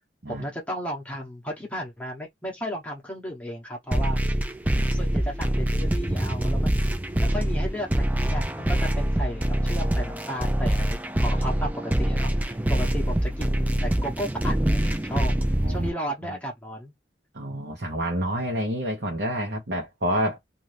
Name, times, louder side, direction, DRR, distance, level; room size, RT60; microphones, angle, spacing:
voice 1, 0.3-4.2 4.9-6.9 7.2-15.3 15.7-16.9, equal, 10° left, 0.9 m, -34 dB
sound 1, 3.9-15.9, right 1 dB, 10° right, 0.4 m, -24 dB
voice 2, 17.3-20.4, right 1 dB, 65° right, 1.0 m, -28 dB
2.6 x 2.6 x 3.2 m
head